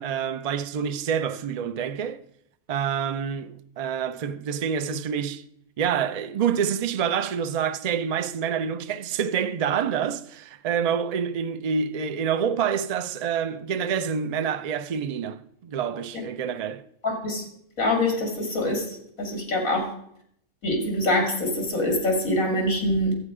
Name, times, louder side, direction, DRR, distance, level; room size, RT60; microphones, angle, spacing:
voice 1, 0.0-2.2 2.7-5.4 5.8-16.8, right 7 dB, 80° right, 0.3 m, -27 dB
voice 2, 17.0-17.4 17.8-18.9 19.2-19.9 20.6-23.1, left 1 dB, 75° left, 2.9 m, -24 dB
11.5 x 8.4 x 4.9 m
omnidirectional pair, 1.5 m